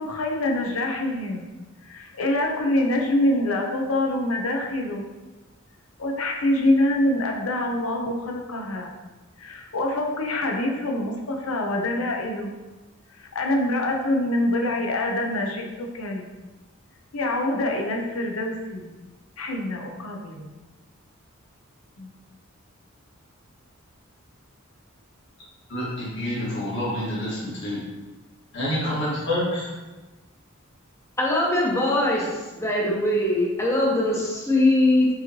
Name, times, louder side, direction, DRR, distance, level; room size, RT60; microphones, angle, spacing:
voice 1, 0.0-1.5 1.8-5.0 6.0-8.9 9.4-12.5 13.1-16.3 17.1-19.0 19.4-20.5 22.0-22.1, left 1 dB, 85° left, 2 dB, 0.6 m, -25 dB
voice 2, 25.7-27.8 28.5-29.7, left 1 dB, 60° left, -6 dB, 1.5 m, -27 dB
voice 3, 31.2-35.1, left 1 dB, 15° left, -3 dB, 0.7 m, -21 dB
4.7 x 3.0 x 2.8 m, 1.2 s
head